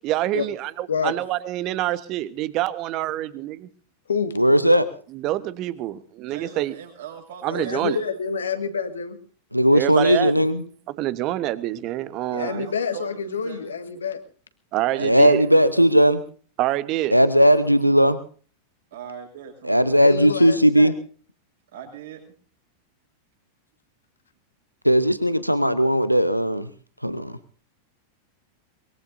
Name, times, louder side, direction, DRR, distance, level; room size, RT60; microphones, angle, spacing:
voice 1, 0.0-3.7 5.1-6.7 7.4-8.0 9.7-10.3 10.9-12.7 14.7-15.4 16.6-17.1, right 15 dB, 40° right, 16 dB, 1.1 m, -26 dB
voice 2, 4.4-4.9 9.5-10.6 15.0-16.2 17.1-18.2 19.7-20.9 24.8-26.7 27.0-27.4, equal, 90° right, 14 dB, 0.8 m, -17 dB
voice 3, 6.2-8.2 12.3-13.7 14.9-15.7 18.9-19.9 21.7-22.2, right 8 dB, 60° right, 2 dB, 6.1 m, -40 dB
voice 4, 7.5-9.2 12.3-14.2 20.0-20.9, left 6 dB, 70° left, 10 dB, 1.7 m, -27 dB
23.0 x 21.5 x 2.7 m, 0.41 s
figure-of-eight pair, 90°, 0 cm